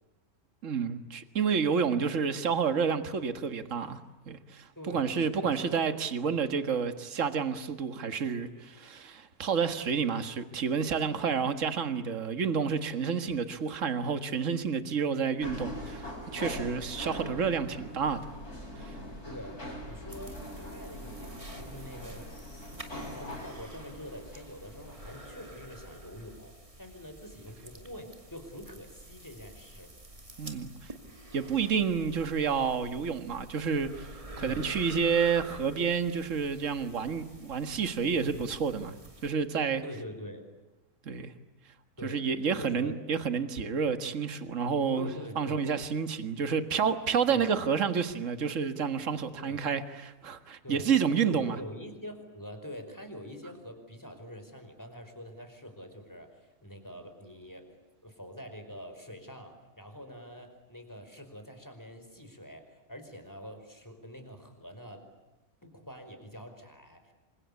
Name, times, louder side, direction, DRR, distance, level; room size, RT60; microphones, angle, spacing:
voice 1, 0.6-18.2 18.8-18.9 30.4-30.9 31.3-34.1 34.4-38.9 39.2-39.8 41.1-41.3 42.0-45.1 45.4-51.6, right 6 dB, 55° right, 10 dB, 2.0 m, -29 dB
voice 2, 4.7-6.0 19.2-29.9 34.3-34.7 39.8-40.5 42.0-42.2 42.6-43.0 45.0-45.7 47.3-47.5 49.4-49.7 50.6-50.9 51.2-57.7 58.0-65.0 65.6-67.1, equal, 10° left, 7 dB, 5.2 m, -45 dB
sound 1, 15.4-25.3, equal, 80° left, 8.2 m, -42 dB
sound 2, 20.1-39.3, right 1 dB, 20° right, 2.7 m, -49 dB
27.5 x 26.0 x 8.3 m, 1.0 s
omnidirectional pair, 1.6 m